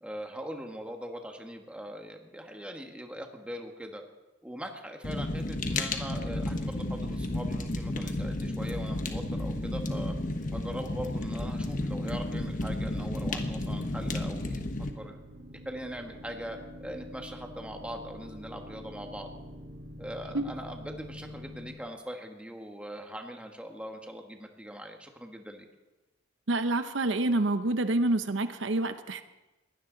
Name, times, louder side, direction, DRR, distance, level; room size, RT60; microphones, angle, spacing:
voice 1, 0.0-4.0 4.4-10.1 10.5-15.2 15.6-19.3 20.0-25.7, equal, 5° right, 3 dB, 1.6 m, -41 dB
Fire, 5.0-14.9, left 1 dB, 45° left, 1.3 m, -32 dB
sound 1, 11.8-21.8, equal, 60° right, 3.6 m, -47 dB
voice 2, 26.5-29.2, right 2 dB, 75° right, 10 dB, 0.8 m, -27 dB
21.5 x 17.0 x 4.0 m, 1.1 s
head